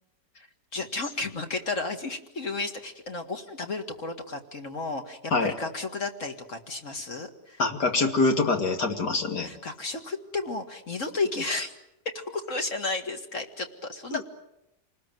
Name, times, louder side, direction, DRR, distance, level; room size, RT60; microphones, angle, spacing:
voice 1, 0.7-7.6 9.4-11.7 12.1-14.2, left 3 dB, 50° left, 5 dB, 2.3 m, -33 dB
voice 2, 7.6-9.5 14.1-14.2, left 3 dB, 80° left, 4 dB, 3.0 m, -25 dB
28.0 x 20.0 x 9.3 m, 0.89 s
omnidirectional pair, 1.8 m